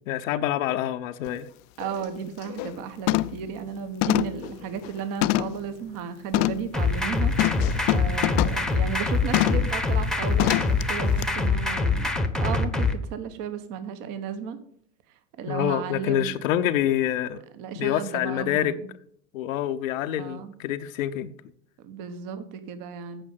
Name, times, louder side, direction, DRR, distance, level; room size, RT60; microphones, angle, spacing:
voice 1, 0.1-1.5 15.5-17.4 17.8-18.7 19.3-21.3, left 11 dB, 75° left, 0.7 m, -26 dB
sound 1, 1.3-1.4 1.8-2.1 2.4-2.7 3.1-3.5 4.0-5.7 6.3-6.7 7.4-8.7 9.3-9.7 10.4-10.8 11.2-11.3, left 17 dB, 50° left, 0.4 m, -25 dB
voice 2, 1.8-12.1 12.4-14.6 15.4-16.4 17.5-18.9 20.2-20.5 21.8-23.2, right 7 dB, 50° right, 1.3 m, -34 dB
sound 2, 6.7-12.9, left 3 dB, ahead, 0.9 m, -24 dB
8.8 x 5.3 x 7.4 m
hypercardioid pair, 100°, 40 cm